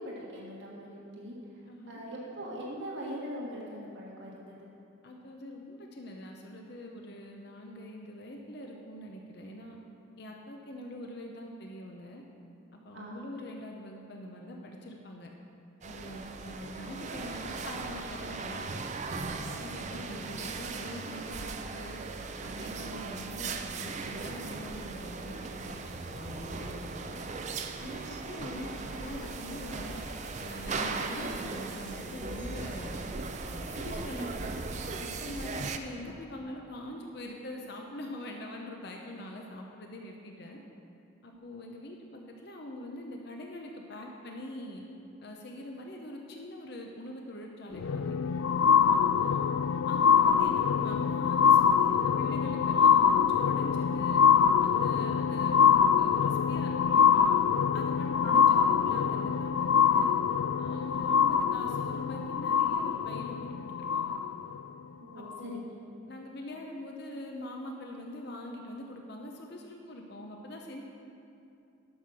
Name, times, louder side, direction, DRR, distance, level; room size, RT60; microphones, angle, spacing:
voice 1, 0.0-4.7 10.1-10.2 12.9-13.3 19.9-20.2 22.5-22.7 28.4-28.9 34.1-34.3 35.9-36.1 49.1-49.2 58.2-58.8 65.0-65.8, equal, 65° right, -4 dB, 1.7 m, -42 dB
voice 2, 1.7-2.0 5.0-9.8 10.2-12.2 12.8-15.3 15.8-18.8 19.3-22.0 22.4-27.2 27.8-30.0 30.4-32.9 33.5-34.5 35.0-40.6 41.2-44.8 45.2-48.1 48.9-49.4 49.9-54.2 54.6-55.6 56.0-57.4 57.7-60.2 60.6-64.2 65.2-65.7 66.1-70.8, left 1 dB, 55° left, 1 dB, 0.8 m, -43 dB
sound 1, 15.8-35.8, right 4 dB, 35° right, 0.5 m, -38 dB
sound 2, 27.7-35.4, equal, 40° left, 1.9 m, -48 dB
sound 3, 47.7-64.6 65.3-65.4, left 7 dB, 85° left, 0.3 m, -24 dB
11.5 x 6.4 x 6.1 m, 2.6 s
head